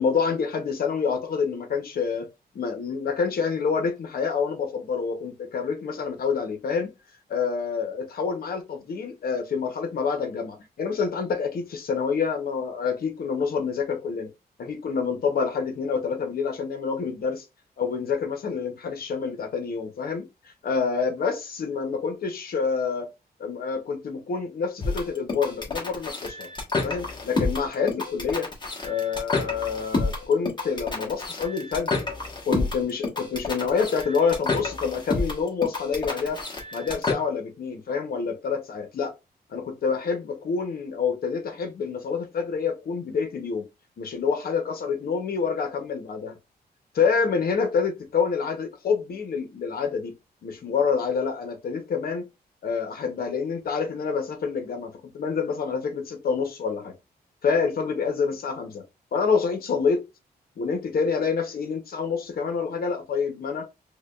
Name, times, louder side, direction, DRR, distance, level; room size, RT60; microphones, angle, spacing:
voice 1, 0.0-2.3 2.5-6.9 7.3-14.3 14.6-17.4 17.8-20.3 20.6-23.1 23.4-26.5 26.8-28.5 28.8-32.0 32.5-36.4 36.7-39.1 39.5-43.7 44.0-46.4 46.9-50.1 50.4-52.3 52.6-56.9 57.4-58.8 59.1-60.0 60.6-63.7, left 5 dB, 65° left, 0.9 m, -27 dB
sound 1, 24.8-37.1, left 3 dB, 30° left, 1.1 m, -29 dB
4.8 x 2.3 x 2.4 m
wide cardioid pair, 130°, 17 cm